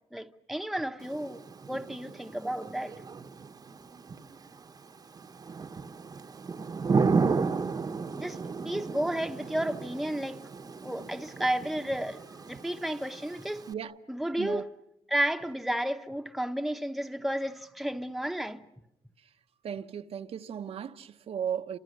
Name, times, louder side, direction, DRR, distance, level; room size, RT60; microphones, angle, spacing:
voice 1, 0.1-2.9 8.2-8.4 8.6-13.6 14.1-14.7 15.1-18.6, right 1 dB, ahead, 1.0 m, -32 dB
Thunder / Rain, 1.0-13.7, right 4 dB, 40° right, 1.0 m, -34 dB
voice 2, 19.6-21.8, right 8 dB, 70° right, 1.0 m, -35 dB
30.0 x 26.5 x 6.6 m
cardioid pair, 110°, 11 cm